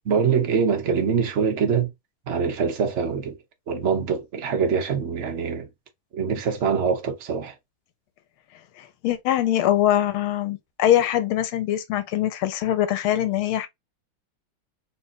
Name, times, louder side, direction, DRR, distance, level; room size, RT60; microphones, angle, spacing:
voice 1, 0.0-1.9 2.3-3.4 3.7-5.7 6.1-7.5, right 6 dB, 60° right, 0.7 m, -24 dB
voice 2, 8.8-13.7, left 12 dB, 75° left, 1.5 m, -23 dB
3.9 x 2.4 x 4.0 m
omnidirectional pair, 2.4 m